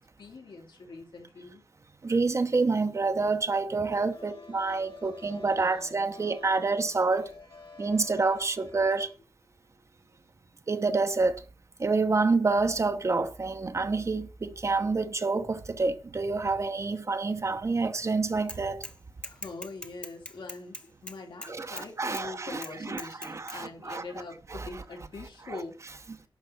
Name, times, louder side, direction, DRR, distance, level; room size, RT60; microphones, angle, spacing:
voice 1, 0.2-1.6 4.1-9.1 19.3-25.8, left 3 dB, 70° left, 3.9 m, -44 dB
voice 2, 2.0-7.3 7.8-9.1 10.7-11.4 11.8-18.8 21.4-24.0 24.5-24.7, right 3 dB, 35° right, 1.0 m, -28 dB
Bicycle / Mechanisms, 18.5-19.0 19.2-21.9 22.1-22.2 22.6-23.6, left 1 dB, 10° left, 1.1 m, -41 dB
11.5 x 5.7 x 7.9 m
wide cardioid pair, 140°, 8 cm